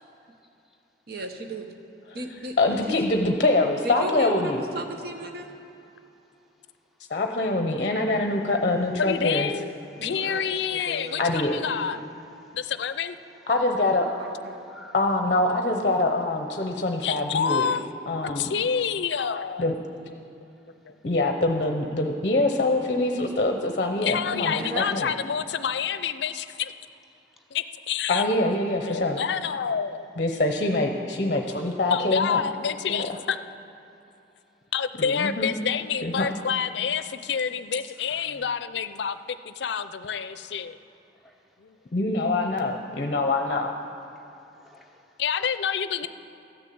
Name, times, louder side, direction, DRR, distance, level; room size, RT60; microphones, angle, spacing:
voice 1, 1.1-1.7 2.1-3.1 3.8-5.5 10.0-11.3 11.7-12.0 14.2-14.6 24.5-24.9, right 1 dB, 55° right, 5 dB, 0.8 m, -36 dB
voice 2, 2.6-4.6 7.1-9.5 11.2-11.6 13.5-14.1 14.9-17.7 18.1-18.5 19.6-19.7 21.0-25.1 28.1-29.2 30.2-32.4 32.9-33.1 35.0-35.5 36.0-36.3 41.9-43.7, left 2 dB, 45° left, 4 dB, 0.8 m, -24 dB
voice 3, 9.0-9.7 10.0-12.0 12.5-13.2 17.0-17.8 18.2-19.7 20.4-20.5 20.9-21.0 21.6-21.7 24.0-26.7 27.5-28.2 28.8-30.1 31.4-31.6 31.9-33.4 34.7-40.8 41.6-41.8 45.2-46.1, left 7 dB, 70° left, 12 dB, 0.5 m, -28 dB
voice 4, 12.0-12.6 14.5-15.0 27.4-27.5 38.1-38.5 41.2-41.4 44.5-45.2, left 1 dB, ahead, 2 dB, 0.9 m, -53 dB
13.0 x 7.0 x 8.5 m, 2.8 s
head